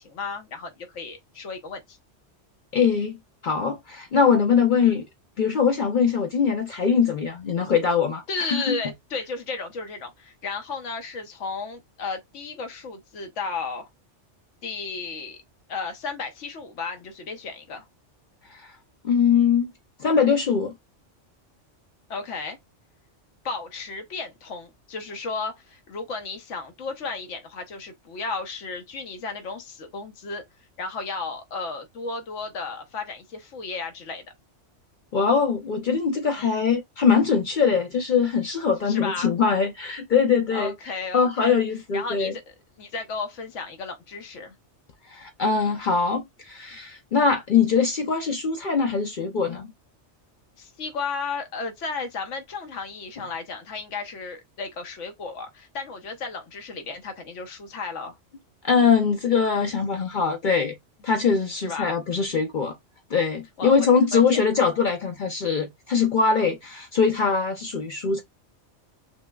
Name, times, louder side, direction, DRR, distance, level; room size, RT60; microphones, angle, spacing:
voice 1, 0.0-2.0 4.8-5.0 8.3-13.9 14.6-15.4 15.7-17.8 22.1-22.6 23.4-30.4 30.8-34.2 36.4-36.5 38.9-39.3 40.5-41.5 41.9-44.5 50.6-58.2 61.5-61.9 63.6-64.4, left 4 dB, 85° left, 1.2 m, -34 dB
voice 2, 2.7-3.2 3.4-5.0 5.4-8.8 18.5-18.7 19.0-19.7 20.0-20.7 35.1-40.7 41.1-42.3 45.1-49.7 58.6-60.8 61.0-62.7 63.1-68.2, left 6 dB, 55° left, 0.6 m, -22 dB
6.0 x 2.0 x 2.3 m
omnidirectional pair, 1.2 m